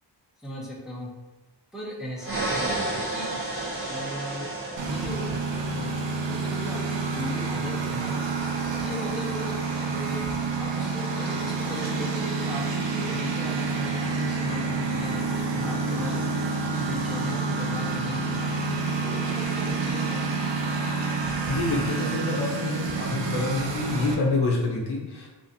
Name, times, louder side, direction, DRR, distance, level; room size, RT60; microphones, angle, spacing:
voice 1, 0.4-1.1 1.7-3.3 3.9-4.5 4.8-5.3 5.7-6.0 6.3-8.1 8.8-10.3 10.6-16.3 16.6-20.3, equal, ahead, -5 dB, 0.5 m, -37 dB
sound 1, 2.2-6.1, right 2 dB, 30° right, 0.8 m, -31 dB
Engine, 4.8-24.1, right 4 dB, 85° right, 0.5 m, -28 dB
voice 2, 21.5-25.3, left 3 dB, 65° left, -1 dB, 0.6 m, -27 dB
2.5 x 2.5 x 2.5 m, 1.2 s
wide cardioid pair, 90°, 43 cm